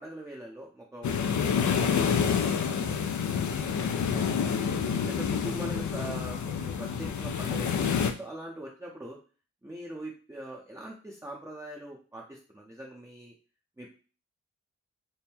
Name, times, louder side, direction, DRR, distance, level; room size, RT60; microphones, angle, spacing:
voice 1, 0.0-4.5 5.1-7.8 8.2-9.2 9.6-13.3 13.8-13.9, right 1 dB, 10° right, -2 dB, 0.6 m, -43 dB
sound 1, 1.0-8.1, left 7 dB, 75° left, 0.5 m, -28 dB
3.5 x 2.1 x 4.3 m, 0.36 s
wide cardioid pair, 95°, 30 cm